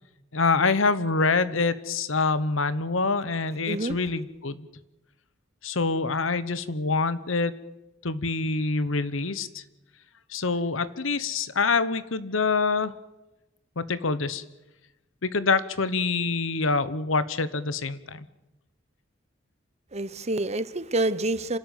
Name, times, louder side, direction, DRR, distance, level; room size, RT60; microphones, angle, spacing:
voice 1, 0.3-4.7 5.6-7.5 8.0-9.6 10.3-12.9 13.8-14.4 15.2-18.2, left 4 dB, 85° left, 1.1 m, -26 dB
voice 2, 3.7-4.0 19.9-21.6, right 2 dB, 35° right, 1.0 m, -27 dB
27.0 x 13.0 x 9.3 m
head